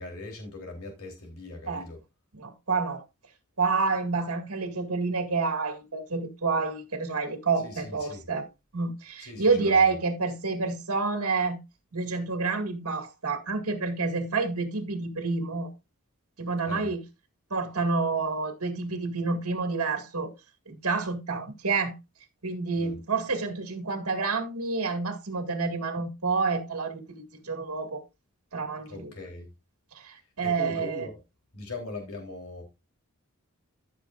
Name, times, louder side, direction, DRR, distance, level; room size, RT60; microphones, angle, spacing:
voice 1, 0.0-2.0 7.6-8.2 9.2-9.9 16.7-16.9 22.8-23.0 28.9-29.5 30.4-31.1 31.5-32.6, left 2 dB, 75° left, 3.6 m, -40 dB
voice 2, 2.3-3.0 3.6-8.5 8.7-11.6 11.9-15.7 16.4-17.0 17.5-20.3 20.7-21.9 22.4-28.0 28.5-29.1 29.9-31.1, right 4 dB, 75° right, 2.1 m, -28 dB
15.0 x 6.7 x 2.5 m
head